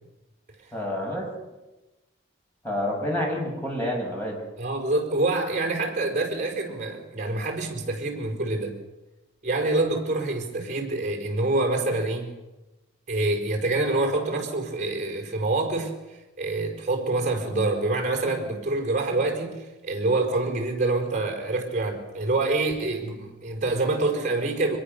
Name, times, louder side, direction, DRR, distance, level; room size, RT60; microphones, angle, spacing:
voice 1, 0.7-1.3 2.6-4.4, left 1 dB, 10° left, -2 dB, 7.1 m, -28 dB
voice 2, 4.6-8.8 9.4-12.3 13.1-15.9 16.4-24.8, right 2 dB, 40° right, 2 dB, 5.0 m, -26 dB
24.0 x 22.0 x 6.8 m, 1.1 s
head